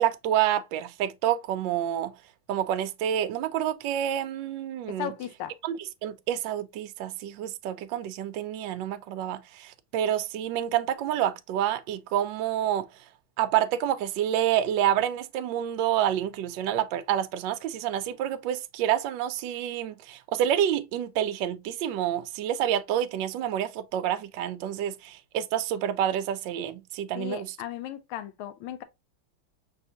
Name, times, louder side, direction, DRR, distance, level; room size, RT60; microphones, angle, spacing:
voice 1, 0.0-2.1 2.5-5.1 5.6-5.7 6.0-12.9 13.4-27.5, right 10 dB, 75° right, 1.1 m, -28 dB
voice 2, 4.9-5.5 27.1-28.8, left 10 dB, 85° left, 1.5 m, -36 dB
6.0 x 2.7 x 2.7 m
omnidirectional pair, 2.3 m